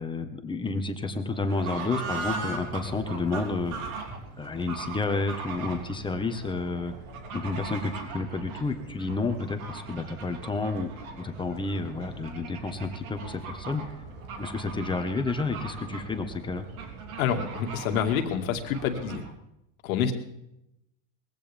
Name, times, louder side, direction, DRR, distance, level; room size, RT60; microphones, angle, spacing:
voice 1, 0.0-4.1 4.4-6.9 7.3-10.9 11.2-13.8 14.4-16.6, left 3 dB, 10° left, 7 dB, 1.4 m, -30 dB
Fowl / Bird, 1.3-19.3, right 4 dB, 85° right, 3.5 m, -39 dB
voice 2, 17.2-19.2 19.8-20.1, left 7 dB, 80° left, 5 dB, 2.2 m, -27 dB
20.5 x 15.5 x 3.5 m, 0.83 s
supercardioid pair, 135°, 41 cm